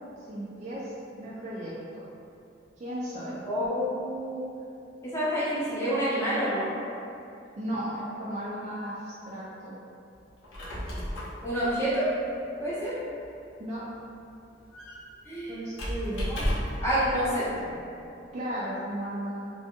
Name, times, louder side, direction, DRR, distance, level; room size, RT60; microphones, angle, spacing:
voice 1, 0.3-2.1 2.8-3.4 7.6-9.8 13.6-13.8 15.5-16.3 18.3-19.5, right 1 dB, 35° right, -8 dB, 0.4 m, -35 dB
voice 2, 3.5-4.4 5.0-6.7 11.4-12.1 12.6-12.9 15.2-15.6 16.3-16.4 16.8-17.7, equal, 15° left, -10 dB, 0.7 m, -28 dB
Squeak, 10.3-16.9, equal, 80° left, 0.6 m, -35 dB
2.5 x 2.2 x 2.8 m, 2.6 s
head